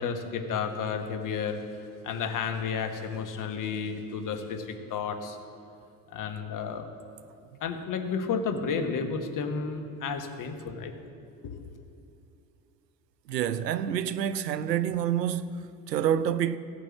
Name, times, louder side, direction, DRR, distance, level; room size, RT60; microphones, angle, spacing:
voice 1, 0.0-1.6 2.0-5.4 6.1-6.9 7.6-10.9 11.4-11.8, left 5 dB, 40° left, 1.5 m, -32 dB
voice 2, 13.3-16.6, right 9 dB, 90° right, 0.5 m, -28 dB
16.0 x 5.4 x 7.5 m
figure-of-eight pair, 65°, 48 cm